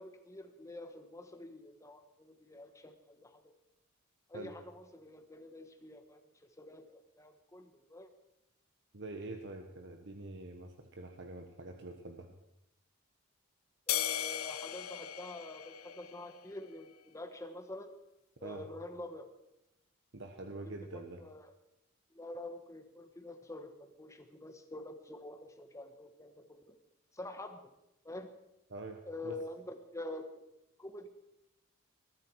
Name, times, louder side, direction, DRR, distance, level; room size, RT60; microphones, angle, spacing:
voice 1, 0.0-3.5 4.3-6.2 6.6-6.8 7.2-8.1 13.9-18.0 18.4-19.3 20.9-21.5 22.1-26.8 27.1-27.6 28.0-28.3 29.0-29.6 29.9-30.4 30.8-31.1, left 1 dB, 15° left, 6 dB, 1.3 m, -47 dB
voice 2, 8.9-12.3 18.4-18.6 20.1-21.2 28.7-29.4, right 2 dB, 60° right, 4 dB, 1.4 m, -45 dB
sound 1, 13.9-16.5, left 12 dB, 85° left, 0.7 m, -37 dB
22.0 x 13.5 x 4.8 m, 0.88 s
head